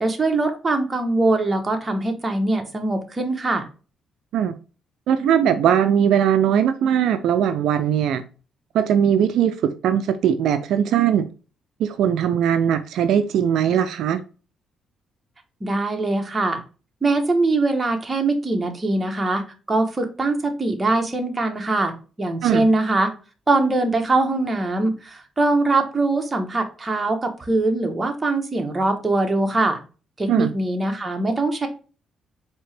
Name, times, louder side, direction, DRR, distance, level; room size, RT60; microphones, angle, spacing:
voice 1, 0.0-3.7 15.6-16.6 17.0-23.1 23.5-29.8 30.2-31.7, right 2 dB, 25° right, 1.0 m, -22 dB
voice 2, 5.1-8.2 8.7-11.3 11.8-14.2 22.4-22.7 30.3-30.5, right 9 dB, 80° right, 0.4 m, -20 dB
4.3 x 2.8 x 3.2 m
cardioid pair, 90°, 0 cm